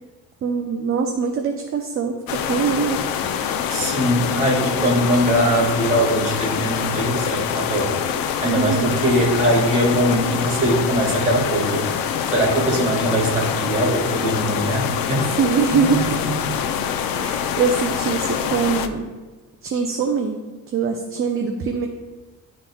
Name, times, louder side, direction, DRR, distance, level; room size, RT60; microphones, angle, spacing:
voice 1, 0.4-3.0 8.4-9.0 15.4-16.0 17.1-19.1 19.6-20.4 20.7-21.9, right 6 dB, 40° right, 3 dB, 0.5 m, -23 dB
sound 1, 2.3-18.9, left 8 dB, 80° left, 0.6 m, -25 dB
voice 2, 3.7-7.9 8.4-11.8 12.3-15.3, right 1 dB, 20° right, -3 dB, 1.7 m, -21 dB
11.0 x 3.8 x 2.3 m, 1.3 s
cardioid pair, 155°, 34 cm